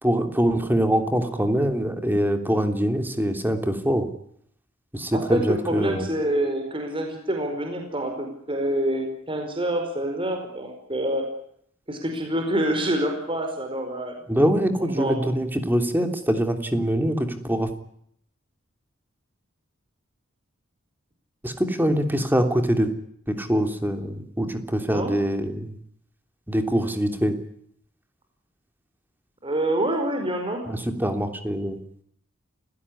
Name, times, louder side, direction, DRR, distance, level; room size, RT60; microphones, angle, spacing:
voice 1, 0.0-4.1 4.9-6.1 14.3-17.7 21.4-22.9 23.3-25.7 26.5-27.4 30.6-31.8, equal, 10° right, 7 dB, 3.1 m, -24 dB
voice 2, 5.1-11.2 11.9-14.1 15.0-15.2 24.9-25.1 29.4-30.6, right 1 dB, 25° right, 4 dB, 5.0 m, -26 dB
29.0 x 17.0 x 10.0 m, 0.70 s
head